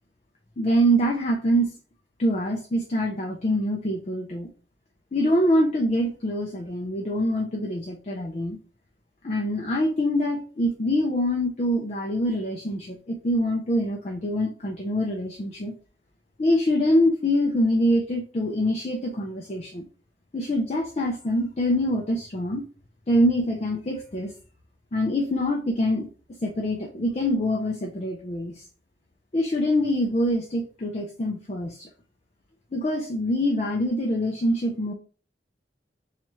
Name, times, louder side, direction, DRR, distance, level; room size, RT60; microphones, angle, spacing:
voice 1, 0.6-1.7 2.2-4.5 5.1-8.6 9.2-15.7 16.4-19.8 20.3-22.7 23.1-24.3 24.9-26.1 26.4-28.6 29.3-31.9 32.7-34.9, equal, 35° left, 1 dB, 0.4 m, -25 dB
3.0 x 2.4 x 4.1 m, 0.38 s
head